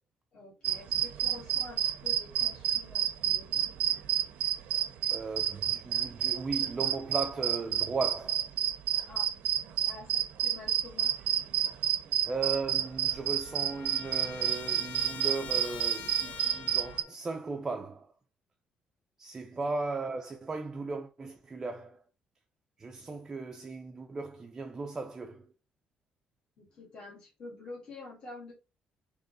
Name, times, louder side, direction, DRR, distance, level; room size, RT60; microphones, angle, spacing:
voice 1, 0.3-3.5 9.1-9.3 9.9-11.1 26.6-28.5, left 2 dB, 35° left, 1.7 m, -48 dB
sound 1, 0.6-17.0, right 11 dB, 90° right, 0.6 m, -30 dB
voice 2, 5.1-8.5 12.3-18.1 19.2-22.0 22.8-25.5, right 4 dB, 20° right, 0.4 m, -36 dB
Trumpet, 12.4-12.5 12.7-17.1, left 7 dB, 75° left, 0.6 m, -45 dB
3.8 x 2.9 x 3.8 m
cardioid pair, 175°, 3 cm